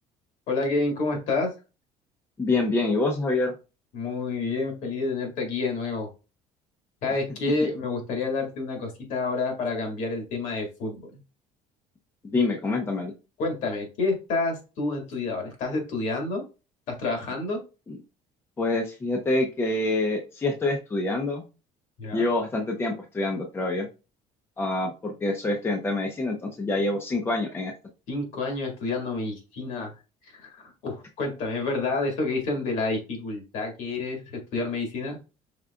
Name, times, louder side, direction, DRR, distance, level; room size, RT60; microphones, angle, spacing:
voice 1, 0.5-1.5 3.9-6.1 7.0-11.2 13.4-16.4 16.9-17.6 22.0-22.3 28.1-29.9 30.3-35.2, left 3 dB, 60° left, 2 dB, 2.0 m, -29 dB
voice 2, 2.4-3.5 12.2-13.1 17.9-18.0 18.6-21.4 22.1-23.9 24.6-27.7, left 2 dB, 15° left, 2 dB, 0.6 m, -26 dB
5.0 x 3.9 x 2.3 m, 0.30 s
cardioid pair, 155°, 14 cm